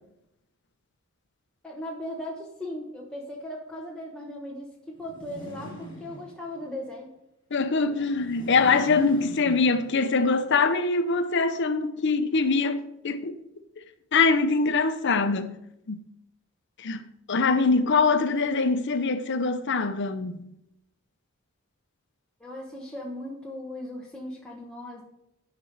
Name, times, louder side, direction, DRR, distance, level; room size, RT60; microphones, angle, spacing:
voice 1, 1.6-7.1 22.4-25.0, left 1 dB, 5° left, 1.1 m, -38 dB
sound 1, 5.0-6.7 8.0-10.2, equal, 25° left, 2.1 m, -42 dB
voice 2, 7.5-13.3 14.1-15.5 15.9-16.0 16.8-17.0 17.3-20.4, left 4 dB, 60° left, 0.7 m, -23 dB
11.5 x 5.3 x 4.7 m
head